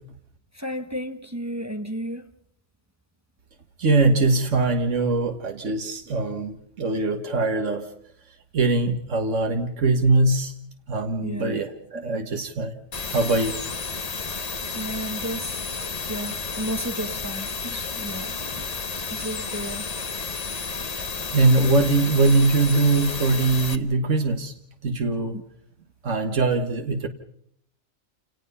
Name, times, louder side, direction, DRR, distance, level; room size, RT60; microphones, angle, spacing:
voice 1, 0.5-2.3 11.2-11.6 11.9-12.0 14.7-15.6 16.1-19.9 25.3-25.4, equal, 15° right, 7 dB, 1.1 m, -33 dB
voice 2, 3.8-7.9 8.5-10.5 10.9-12.7 13.1-13.6 21.3-24.5 24.8-25.3 26.0-27.1, right 3 dB, 85° right, 5 dB, 1.8 m, -22 dB
sound 1, 12.9-23.8, left 4 dB, 35° left, 1.1 m, -32 dB
28.5 x 19.0 x 5.6 m, 0.68 s
omnidirectional pair, 1.2 m